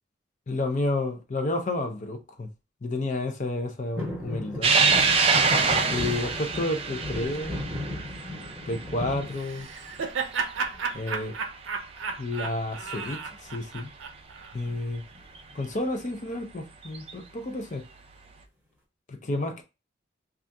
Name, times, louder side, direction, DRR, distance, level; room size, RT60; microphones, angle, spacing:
voice 1, 0.5-2.5 2.8-4.8 5.9-7.6 8.7-9.7 10.9-11.4 12.2-13.9 14.5-15.0 15.5-17.8 19.1-19.6, left 2 dB, 40° left, 0.5 m, -30 dB
sound 1, 3.9-10.1 10.6-11.2 12.4-12.9 13.1-13.2 13.5-13.8 14.6-15.6 16.0-16.1, left 1 dB, 10° right, 0.9 m, -36 dB
sound 2, 4.6-11.3 11.7-11.8 13.1-13.2 15.3-15.4 16.8-17.1, right 4 dB, 30° right, 0.3 m, -25 dB
Laughter, 9.3-14.5, right 5 dB, 85° right, 0.5 m, -33 dB
2.7 x 2.4 x 3.4 m
head